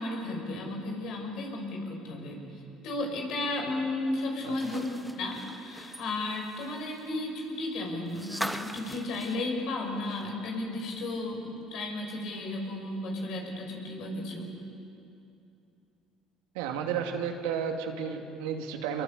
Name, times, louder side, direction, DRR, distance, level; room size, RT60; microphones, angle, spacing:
voice 1, 0.0-4.8 5.1-14.5, left 2 dB, 70° left, 1 dB, 6.0 m, -34 dB
sound 1, 4.4-10.5 10.8-10.9 12.3-12.4, right 1 dB, 5° right, 1.4 m, -41 dB
voice 2, 16.5-19.0, right 7 dB, 85° right, 3 dB, 2.3 m, -32 dB
26.0 x 22.0 x 8.3 m, 2.7 s
supercardioid pair, 80°, 0 cm